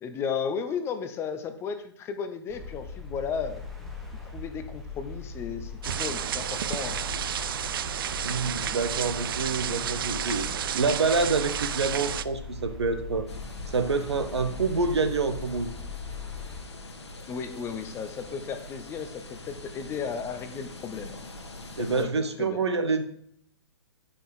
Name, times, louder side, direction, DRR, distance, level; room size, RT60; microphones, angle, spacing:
voice 1, 0.0-3.6 4.3-7.0 17.3-21.2 21.8-22.6, left 6 dB, 15° left, 9 dB, 0.6 m, -34 dB
sound 1, 2.5-16.6, left 4 dB, ahead, 1.2 m, -40 dB
sound 2, 5.8-12.2, right 10 dB, 55° right, 0.4 m, -31 dB
voice 2, 8.2-13.3 13.7-15.7 21.8-23.0, right 4 dB, 75° right, 8 dB, 1.1 m, -27 dB
sound 3, 13.3-22.1, left 2 dB, 75° left, 1.4 m, -43 dB
8.6 x 5.3 x 4.8 m, 0.66 s
figure-of-eight pair, 125°, 14 cm